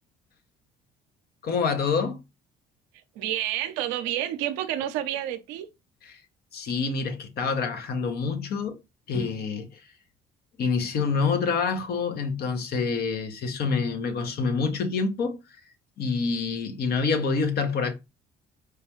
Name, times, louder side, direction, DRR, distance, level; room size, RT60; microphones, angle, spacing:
voice 1, 1.4-2.2 6.0-6.2 6.5-8.8 9.1-9.8 10.6-15.4 16.0-17.9, left 5 dB, 60° left, 1.0 m, -27 dB
voice 2, 3.2-5.7, right 12 dB, 80° right, 0.6 m, -29 dB
4.7 x 2.3 x 3.0 m
hypercardioid pair, 65°, 19 cm